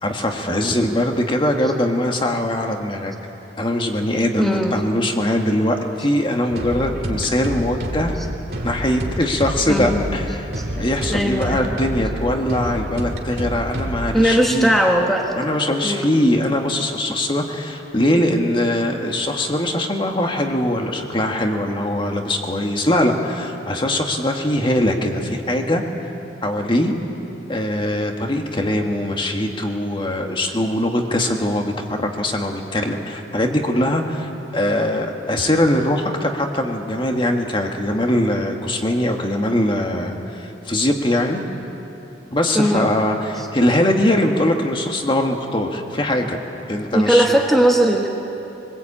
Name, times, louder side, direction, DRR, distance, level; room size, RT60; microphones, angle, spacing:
voice 1, 0.0-3.1 3.6-8.2 8.6-10.5 10.8-14.7 15.3-26.1 26.4-26.9 27.5-41.4 42.3-46.4 46.7-47.3, left 1 dB, 30° left, 3 dB, 1.7 m, -21 dB
voice 2, 4.4-4.8 9.7-10.1 10.6-10.7 11.1-11.7 14.1-15.3 15.8-16.1 42.5-42.9 46.9-48.1, equal, ahead, 0 dB, 1.3 m, -18 dB
sound 1, 6.5-14.2, equal, 60° right, 2.5 m, -28 dB
23.0 x 20.5 x 8.7 m, 3.0 s
head